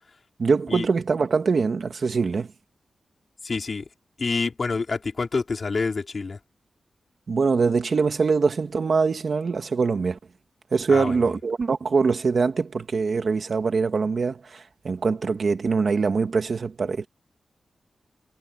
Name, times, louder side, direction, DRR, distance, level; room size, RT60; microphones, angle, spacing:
voice 1, 0.4-2.5 7.3-10.2 10.7-17.1, right 4 dB, 55° right, 2.0 m, -23 dB
voice 2, 3.4-3.8 4.2-6.4 10.9-11.1, left 4 dB, 45° left, 4.4 m, -27 dB
wide cardioid pair, 125°, 0 cm